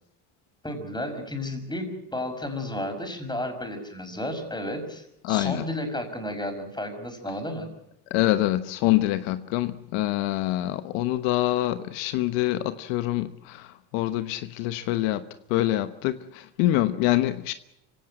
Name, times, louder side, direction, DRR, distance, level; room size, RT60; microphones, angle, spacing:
voice 1, 0.6-7.7, left 1 dB, 10° left, 5.9 m, -32 dB
voice 2, 5.2-5.7 8.1-17.5, left 15 dB, 80° left, 1.2 m, -25 dB
25.5 x 17.0 x 7.7 m
supercardioid pair, 95°, 45 cm